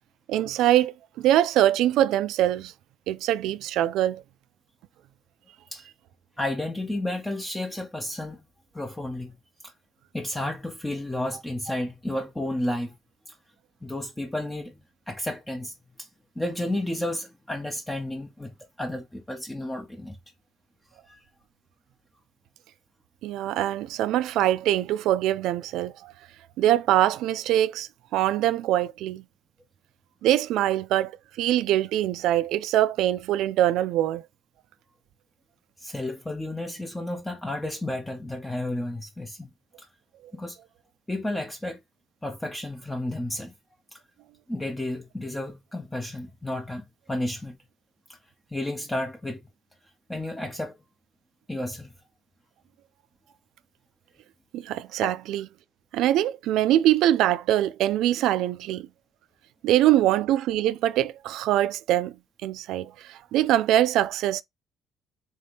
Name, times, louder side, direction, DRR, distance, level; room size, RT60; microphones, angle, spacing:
voice 1, 0.3-2.7 3.1-4.2 23.2-26.1 26.6-29.2 30.2-31.1 31.4-34.2 54.5-55.4 55.9-58.9 59.6-62.1 62.4-64.4, right 13 dB, 80° right, 0.3 m, -23 dB
voice 2, 6.4-8.5 8.7-9.4 9.6-9.7 10.1-13.0 13.3-13.4 13.8-16.1 16.4-20.2 21.1-21.2 35.8-39.5 39.8-39.9 40.3-40.6 41.1-41.8 42.2-43.5 43.9-44.0 44.5-47.6 48.1-48.2 48.5-49.4 50.1-50.8 51.5-51.9 55.0-55.1, left 1 dB, 10° left, 0.7 m, -32 dB
3.8 x 2.8 x 3.4 m
cardioid pair, 120°, 0 cm